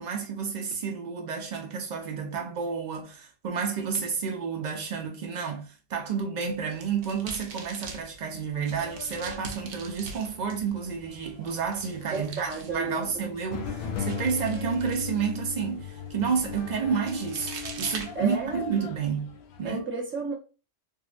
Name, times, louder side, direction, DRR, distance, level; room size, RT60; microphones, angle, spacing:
voice 1, 0.0-19.3 19.6-19.8, right 6 dB, 90° right, 0.3 m, -30 dB
sound 1, 6.4-18.8, right 5 dB, 70° right, 0.8 m, -44 dB
sound 2, 8.5-19.8, left 6 dB, 65° left, 0.7 m, -47 dB
voice 2, 12.1-13.3 18.1-18.6 19.6-20.3, right 4 dB, 15° right, 0.5 m, -32 dB
sound 3, 13.5-19.7, left 8 dB, 85° left, 1.0 m, -37 dB
3.6 x 2.1 x 2.4 m
omnidirectional pair, 1.3 m